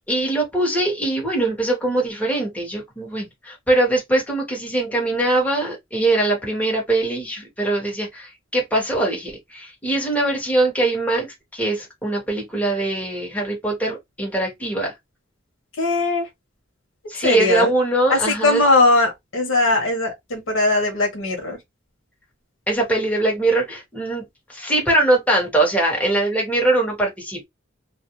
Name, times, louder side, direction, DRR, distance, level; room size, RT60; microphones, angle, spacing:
voice 1, 0.1-11.3 11.5-14.9 17.1-18.6 22.7-24.2 24.5-27.5, right 2 dB, 5° left, 1.1 m, -22 dB
voice 2, 15.8-16.3 17.2-17.7 18.1-21.6, left 2 dB, 90° left, 0.9 m, -19 dB
2.4 x 2.1 x 2.8 m
head